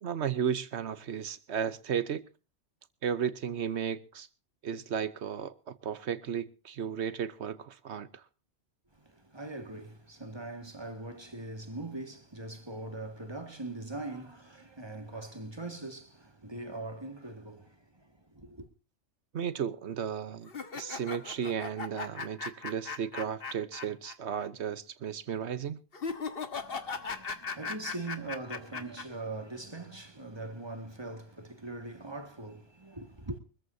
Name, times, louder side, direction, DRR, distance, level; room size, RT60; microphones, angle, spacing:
voice 1, 0.0-2.2 3.0-4.3 4.6-8.2 19.3-20.5 20.7-25.8, right 8 dB, 70° right, 1.2 m, -34 dB
voice 2, 8.9-18.7 26.5-33.4, right 2 dB, 20° right, 2.0 m, -42 dB
sound 1, 20.5-24.1 24.4-24.5 25.9-29.0, left 5 dB, 55° left, 1.5 m, -38 dB
24.0 x 14.0 x 2.7 m
omnidirectional pair, 1.2 m